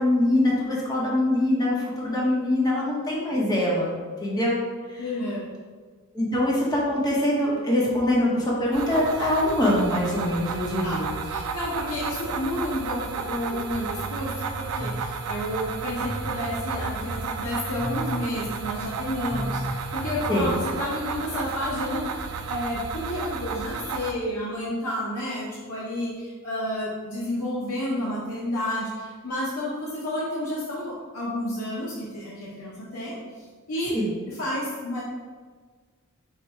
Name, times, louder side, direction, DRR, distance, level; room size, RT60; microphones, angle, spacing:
voice 1, 0.0-4.0 4.2-4.6 4.9-5.0 6.1-11.1 20.3-20.5 33.9-34.1, left 1 dB, 20° left, -4 dB, 0.9 m, -23 dB
voice 2, 5.0-5.5 10.8-34.0 34.3-35.0, left 1 dB, 85° left, -6 dB, 0.7 m, -31 dB
sound 1, 8.7-24.1, right 5 dB, 80° right, 0.3 m, -33 dB
sound 2, 13.7-20.6, right 1 dB, 15° right, 0.8 m, -36 dB
4.6 x 2.2 x 4.3 m, 1.5 s
head